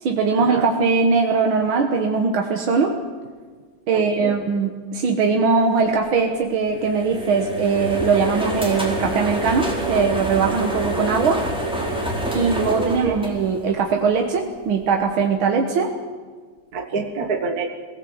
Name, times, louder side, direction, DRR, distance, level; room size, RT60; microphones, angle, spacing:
voice 1, 0.0-2.9 3.9-11.4 12.3-15.9, right 5 dB, 85° right, 3 dB, 2.1 m, -20 dB
voice 2, 3.9-4.4 12.4-13.2 16.7-17.7, right 4 dB, 50° right, 4 dB, 1.8 m, -27 dB
sound 1, 6.7-14.0, right 1 dB, ahead, 3.9 m, -26 dB
22.5 x 17.0 x 7.9 m, 1.5 s
omnidirectional pair, 2.2 m